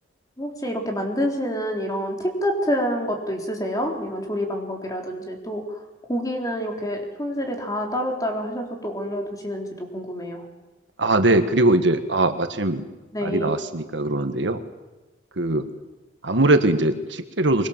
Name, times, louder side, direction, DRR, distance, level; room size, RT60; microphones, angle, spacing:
voice 1, 0.4-5.8 6.1-10.4 13.1-13.6, equal, 20° left, 2 dB, 3.9 m, -27 dB
voice 2, 11.0-12.8 13.2-14.6 15.4-15.6 16.2-17.7, right 2 dB, 70° right, 8 dB, 1.7 m, -21 dB
24.0 x 23.0 x 7.4 m, 1.1 s
head